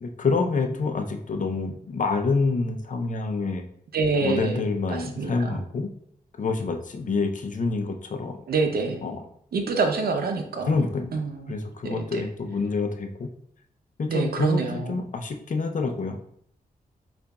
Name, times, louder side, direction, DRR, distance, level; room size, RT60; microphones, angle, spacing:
voice 1, 0.0-3.6 4.2-5.9 6.4-8.4 9.0-9.2 10.7-11.2 11.5-13.3 14.0-16.3, left 4 dB, 55° left, 4 dB, 0.6 m, -27 dB
voice 2, 3.9-4.6 4.9-5.6 8.5-9.0 9.5-11.5 11.8-12.2 14.1-15.0, right 4 dB, 85° right, 4 dB, 0.7 m, -27 dB
6.7 x 2.5 x 2.3 m, 0.67 s
cardioid pair, 80°, 16 cm